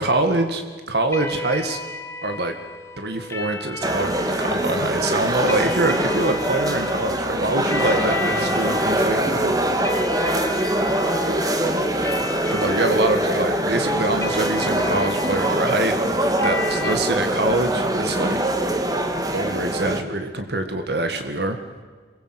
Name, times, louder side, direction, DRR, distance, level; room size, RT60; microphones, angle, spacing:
voice 1, 0.0-1.8 2.2-2.5 3.0-9.6 12.5-15.9 16.4-18.4 19.3-21.6, right 2 dB, 65° right, 6 dB, 2.0 m, -24 dB
sound 1, 1.1-16.9, left 2 dB, 15° left, 1.8 m, -33 dB
sound 2, 3.8-20.0, right 1 dB, 20° right, 2.1 m, -23 dB
27.0 x 22.5 x 8.1 m, 1.6 s
head